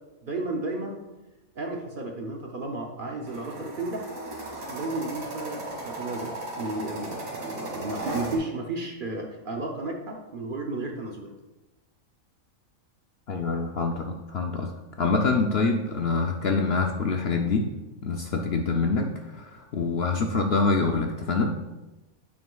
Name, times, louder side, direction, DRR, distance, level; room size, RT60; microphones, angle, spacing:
voice 1, 0.2-1.0 1.6-4.1 4.7-11.3, right 2 dB, 50° right, 1 dB, 0.7 m, -33 dB
sound 1, 3.3-8.4, right 1 dB, 80° right, 2.3 m, -36 dB
voice 2, 13.3-14.7 15.0-17.7 18.0-21.6, left 4 dB, 60° left, 3 dB, 0.7 m, -25 dB
9.2 x 6.1 x 2.3 m, 1.1 s
omnidirectional pair, 1.5 m